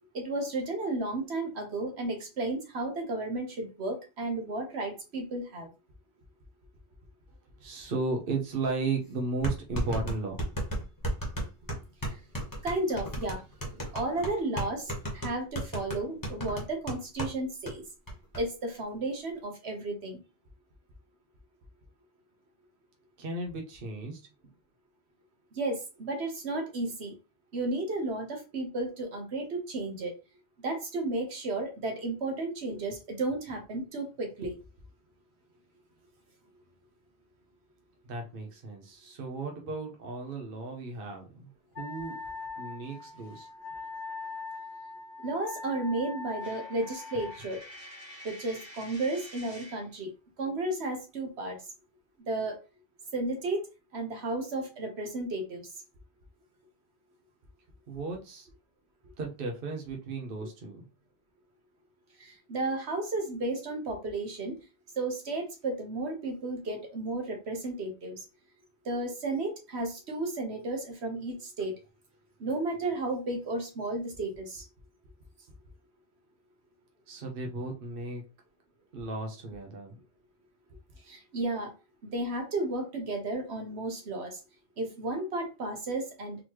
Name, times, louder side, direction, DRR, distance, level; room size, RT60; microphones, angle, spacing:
voice 1, 0.1-5.7 12.6-13.4 13.7-17.8 18.3-20.2 25.6-27.1 27.5-30.1 30.6-34.6 45.2-47.6 48.2-50.1 50.4-51.6 52.3-52.6 53.1-53.6 53.9-55.7 62.2-64.6 65.0-68.2 68.8-71.7 72.4-74.6 81.1-81.7 82.0-84.4 84.8-86.4, right 2 dB, 75° right, 3 dB, 1.3 m, -33 dB
voice 2, 7.6-10.4 23.2-24.2 38.0-41.5 41.8-42.2 42.6-43.5 57.9-58.5 59.2-60.8 77.1-78.2 78.9-80.0, right 3 dB, 55° right, 1 dB, 1.0 m, -35 dB
sound 1, 8.5-8.6 9.4-17.4 17.7-17.8 18.1-18.4, right 1 dB, 20° left, 1.1 m, -34 dB
Wind instrument woodwind instrument, 41.8-47.4, left 4 dB, 75° left, 0.9 m, -41 dB
Coin (dropping), 46.4-49.9, equal, 25° right, 1.4 m, -48 dB
4.0 x 3.0 x 3.0 m, 0.30 s
omnidirectional pair, 1.1 m